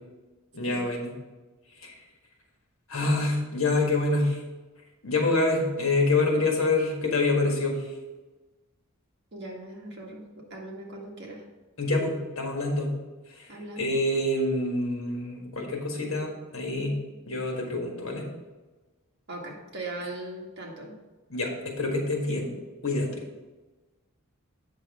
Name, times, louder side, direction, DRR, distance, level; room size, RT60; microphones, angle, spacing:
voice 1, 0.5-1.1 1.8-1.9 2.9-4.4 5.0-7.8 11.8-12.9 13.4-13.5 13.8-17.0 17.3-18.3 21.3-22.5 22.8-23.1, left 2 dB, 65° left, 1 dB, 1.6 m, -26 dB
voice 2, 9.3-11.4 13.5-13.9 19.3-21.0, right 2 dB, 55° right, -2 dB, 1.7 m, -39 dB
8.4 x 6.1 x 3.6 m, 1.2 s
head